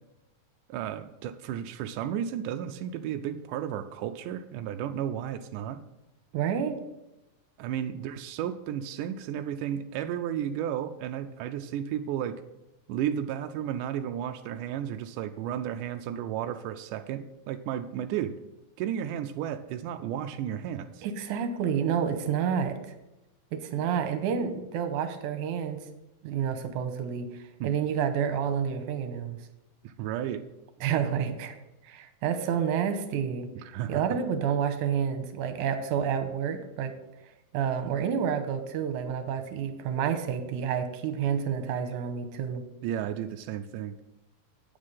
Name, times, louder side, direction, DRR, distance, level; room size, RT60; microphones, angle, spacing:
voice 1, 0.7-5.8 7.6-12.4 12.9-18.4 18.8-21.1 27.6-27.7 29.8-30.5 33.6-34.2 42.8-43.9, right 10 dB, 85° right, 7 dB, 1.8 m, -33 dB
voice 2, 6.3-6.8 21.0-22.8 23.5-25.8 26.2-29.4 30.8-31.6 31.8-33.5 33.9-36.9 37.5-42.6, right 7 dB, 70° right, 8 dB, 2.1 m, -29 dB
9.1 x 8.6 x 5.5 m, 0.96 s
omnidirectional pair, 4.2 m